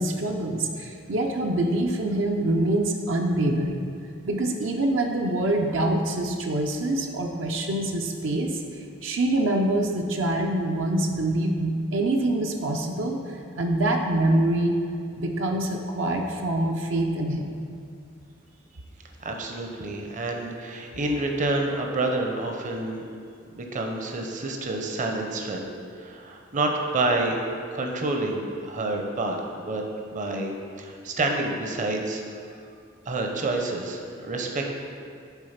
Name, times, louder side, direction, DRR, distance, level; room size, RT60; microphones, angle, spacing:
voice 1, 0.0-3.9 4.2-8.6 9.0-14.8 15.1-17.6, right 1 dB, 75° right, 2 dB, 0.6 m, -25 dB
voice 2, 19.2-23.0 23.5-25.7 25.9-27.4 27.7-29.8 30.1-32.2 33.1-34.7, right 2 dB, 40° right, 2 dB, 0.7 m, -28 dB
8.2 x 3.8 x 5.7 m, 2.3 s
head